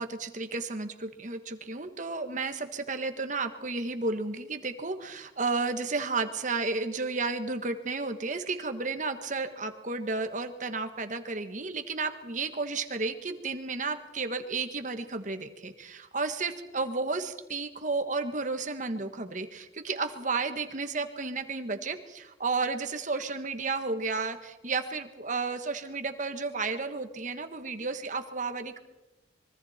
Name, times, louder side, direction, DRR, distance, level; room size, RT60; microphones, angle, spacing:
voice 1, 0.0-28.8, right 3 dB, 45° right, 7 dB, 1.5 m, -32 dB
25.0 x 23.5 x 4.4 m, 1.0 s
head